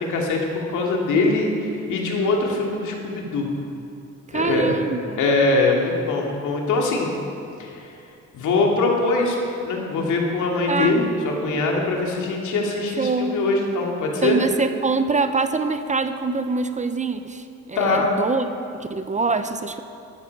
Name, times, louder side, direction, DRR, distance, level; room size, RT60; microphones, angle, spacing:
voice 1, 0.1-0.4 0.7-3.5 4.3-4.8 5.2-7.1 7.6-7.9 8.3-9.4 9.6-14.4 17.8-18.2, left 3 dB, 75° left, -1 dB, 2.5 m, -22 dB
voice 2, 4.3-5.2 10.7-11.0 13.0-13.4 14.2-18.4 18.7-19.8, right 4 dB, 25° right, 9 dB, 0.7 m, -24 dB
13.5 x 13.0 x 4.7 m, 2.8 s
cardioid pair, 90°, 30 cm